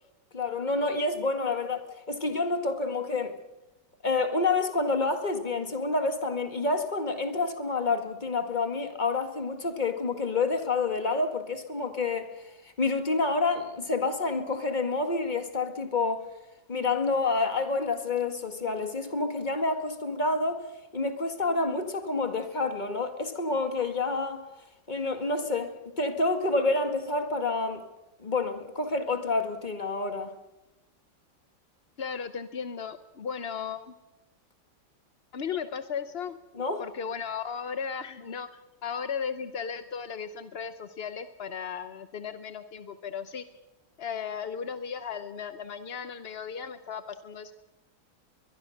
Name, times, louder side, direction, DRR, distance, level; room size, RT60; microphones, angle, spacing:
voice 1, 0.3-3.4 4.0-12.3 12.8-16.3 16.7-20.7 20.9-24.4 24.9-25.7 26.0-27.8 28.2-30.3 36.6-36.8, left 3 dB, 25° left, 1.9 m, -28 dB
voice 2, 32.0-33.9 35.3-36.4 36.8-38.5 38.8-43.4 44.0-47.5, left 7 dB, 55° left, 0.7 m, -36 dB
22.0 x 22.0 x 6.5 m
omnidirectional pair, 2.1 m